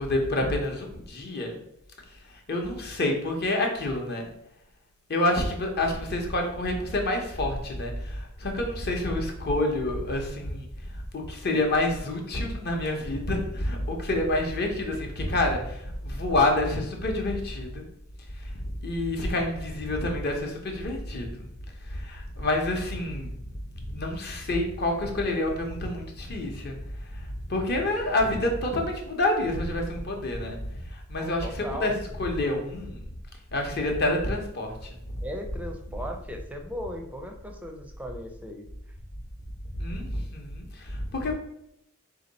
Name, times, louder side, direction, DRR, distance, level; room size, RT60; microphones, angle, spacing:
voice 1, 0.0-1.6 2.3-4.3 5.1-10.7 10.9-17.8 18.4-21.5 21.8-23.3 23.7-26.8 27.1-30.6 30.8-31.9 32.2-33.0 33.5-35.0 39.8-41.3, left 1 dB, 50° left, 2 dB, 0.8 m, -28 dB
voice 2, 31.2-31.9 35.2-38.6, equal, 5° right, 3 dB, 0.5 m, -37 dB
3.6 x 2.8 x 4.0 m, 0.76 s
head